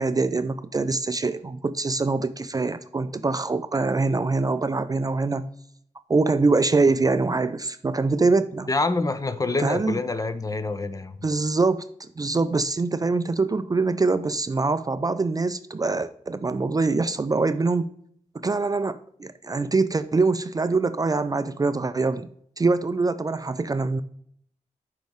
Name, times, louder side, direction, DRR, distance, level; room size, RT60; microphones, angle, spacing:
voice 1, 0.0-5.5 6.1-8.7 9.6-10.0 11.2-11.8 12.2-17.9 18.3-22.3 22.6-24.0, right 3 dB, 30° right, 0.4 m, -24 dB
voice 2, 8.7-11.1, left 3 dB, 25° left, 0.6 m, -26 dB
6.3 x 4.7 x 3.5 m
cardioid pair, 70°, 13 cm